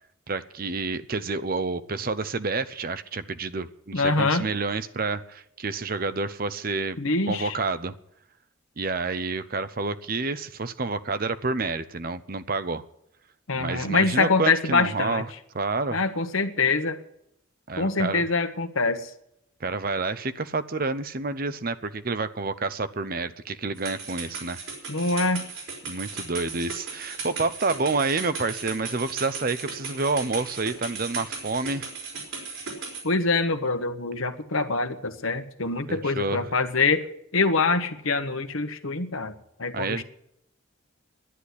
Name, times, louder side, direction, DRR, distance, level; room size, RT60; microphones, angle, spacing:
voice 1, 0.3-7.0 7.3-7.9 8.8-12.8 13.6-15.3 15.5-16.0 17.7-18.3 19.6-24.6 25.8-31.9 35.9-36.5 39.7-40.0, right 3 dB, 45° right, 13 dB, 0.7 m, -29 dB
voice 2, 3.9-4.5 7.0-7.6 13.5-15.2 15.9-17.0 17.8-19.1 24.9-25.5 33.0-37.1 37.3-39.3 39.6-40.0, left 3 dB, 80° left, 8 dB, 1.3 m, -24 dB
sound 1, 23.8-33.0, right 4 dB, 85° right, 4.9 m, -36 dB
11.0 x 10.0 x 9.7 m, 0.77 s
head